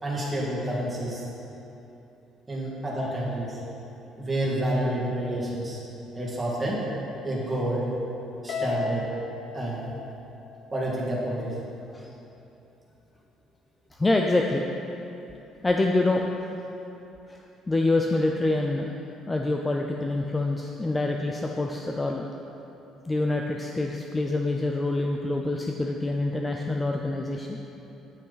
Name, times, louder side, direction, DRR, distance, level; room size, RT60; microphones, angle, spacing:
voice 1, 0.0-1.2 2.5-3.6 4.2-5.8 6.2-6.9 7.2-7.9 8.4-9.1 9.5-9.9 10.7-11.6, right 1 dB, 15° right, -5 dB, 1.9 m, -29 dB
Harp, 8.5-11.0, left 4 dB, 50° left, 0.7 m, -34 dB
voice 2, 14.0-14.6 15.6-16.2 17.3-17.4 17.7-18.9 19.3-22.3 23.1-27.6, left 2 dB, 15° left, 1 dB, 0.4 m, -26 dB
9.2 x 8.6 x 4.0 m, 2.9 s
cardioid pair, 150°, 0 cm